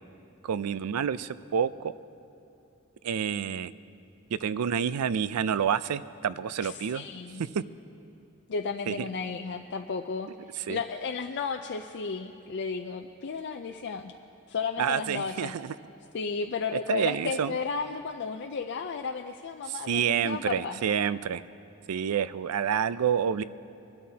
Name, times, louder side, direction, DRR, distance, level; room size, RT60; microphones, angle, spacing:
voice 1, 0.4-1.9 3.0-3.7 4.3-7.1 7.4-7.6 8.9-9.1 10.7-10.8 14.8-15.7 16.7-17.5 19.7-21.4 21.9-23.4, right 7 dB, 90° right, 16 dB, 0.4 m, -28 dB
voice 2, 6.6-7.4 8.5-10.3 10.7-14.1 14.5-15.5 16.1-20.8, left 5 dB, 55° left, 4 dB, 0.4 m, -33 dB
23.5 x 12.5 x 2.8 m, 2.7 s
head